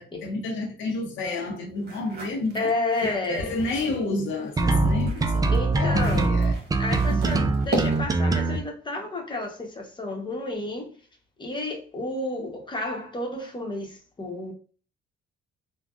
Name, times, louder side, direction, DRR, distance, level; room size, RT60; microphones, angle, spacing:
voice 1, 0.0-2.7 3.0-5.4 5.8-6.6 7.1-7.3, left 2 dB, 75° left, 0.7 m, -30 dB
sound 1, 1.8-4.0 4.5-8.3, right 1 dB, 55° right, 1.1 m, -35 dB
voice 2, 2.5-3.5 5.5-6.4 6.8-10.9 11.4-14.5, left 2 dB, 25° left, 1.0 m, -31 dB
sound 2, 4.6-8.6, right 3 dB, 20° right, 0.3 m, -22 dB
3.4 x 2.2 x 2.4 m
cardioid pair, 90°, 20 cm